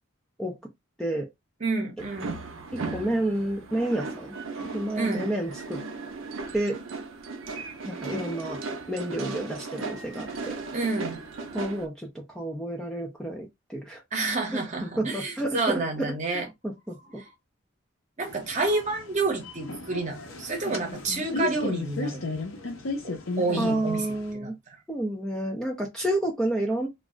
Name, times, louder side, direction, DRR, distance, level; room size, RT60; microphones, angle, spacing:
voice 1, 1.6-2.4 5.0-5.3 10.7-11.2 14.1-16.5 17.0-17.3 18.2-22.3 23.0-24.1 24.3-24.5, right 3 dB, 35° right, 0.9 m, -29 dB
sound 1, 2.0-11.9, right 3 dB, 80° right, 0.6 m, -36 dB
voice 2, 2.7-4.3 4.6-5.8 6.5-6.8 7.9-8.6 8.9-10.5 11.5-14.0 14.5-15.8 16.3-17.0 23.6-24.6 24.9-26.9, right 1 dB, 5° left, 0.5 m, -30 dB
sound 2, 18.2-24.3, left 3 dB, 85° left, 0.9 m, -34 dB
2.4 x 2.1 x 3.6 m
head